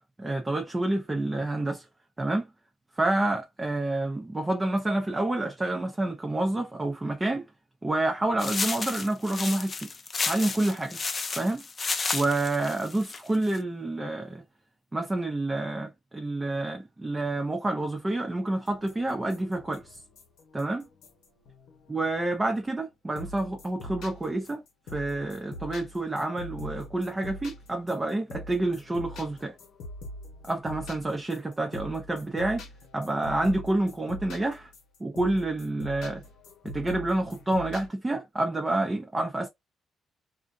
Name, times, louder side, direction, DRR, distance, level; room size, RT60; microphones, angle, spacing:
voice 1, 0.2-1.9 2.2-2.5 3.0-7.5 7.8-9.9 10.2-11.0 11.4-11.6 12.1-14.4 14.9-20.0 20.5-20.9 21.9-24.6 24.9-29.5 30.5-32.6 32.9-34.7 35.0-36.2 36.6-39.5, right 2 dB, 20° right, 0.5 m, -28 dB
sound 1, 8.4-13.6, left 4 dB, 35° left, 0.5 m, -32 dB
sound 2, 18.7-22.6 23.2-37.9, left 1 dB, 85° left, 0.9 m, -44 dB
2.5 x 2.1 x 2.5 m
cardioid pair, 90°, 0 cm